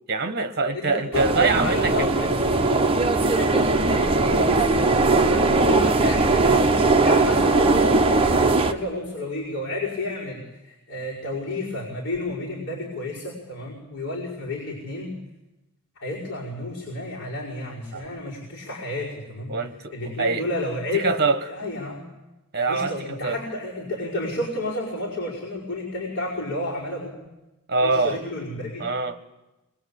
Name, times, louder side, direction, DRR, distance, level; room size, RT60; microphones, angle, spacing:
voice 1, 0.1-2.3 3.3-3.5 17.9-18.0 19.5-20.5 20.9-21.4 22.5-22.9 23.2-23.4 27.7-28.2 28.8-29.3, right 3 dB, 45° right, 10 dB, 1.5 m, -24 dB
voice 2, 0.7-2.8 3.4-10.4 10.7-15.2 16.0-19.5 19.9-21.1 21.5-22.1 22.7-27.2 27.8-28.9, left 1 dB, 55° left, -6 dB, 5.3 m, -31 dB
sound 1, 1.1-8.7, right 3 dB, 25° right, 1.0 m, -19 dB
24.0 x 22.0 x 8.5 m, 1.0 s
head